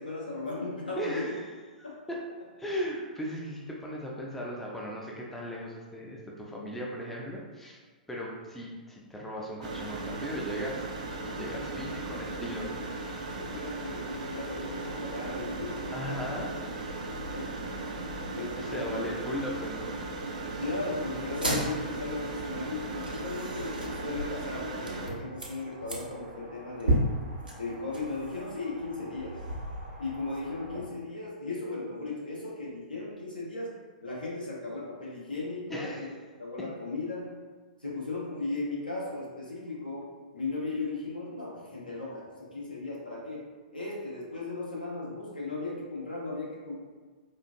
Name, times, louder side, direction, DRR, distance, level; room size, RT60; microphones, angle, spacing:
voice 1, 0.0-1.4 1.8-2.2 8.4-8.5 13.3-16.2 17.3-19.1 20.4-27.0 27.5-29.4 30.0-33.7 34.0-36.1 36.4-37.3 37.8-46.7, left 3 dB, 80° left, -5 dB, 1.1 m, -36 dB
voice 2, 1.0-1.4 1.8-2.2 2.6-7.8 8.1-10.8 11.2-12.7 15.9-16.5 18.6-19.9 35.7-36.0, equal, 5° left, -4 dB, 0.5 m, -37 dB
sound 1, 9.6-25.1, right 2 dB, 55° right, 0.5 m, -37 dB
sound 2, 21.4-30.8, right 1 dB, 80° right, 0.8 m, -35 dB
4.2 x 2.5 x 2.5 m, 1.4 s
figure-of-eight pair, 110°, 5 cm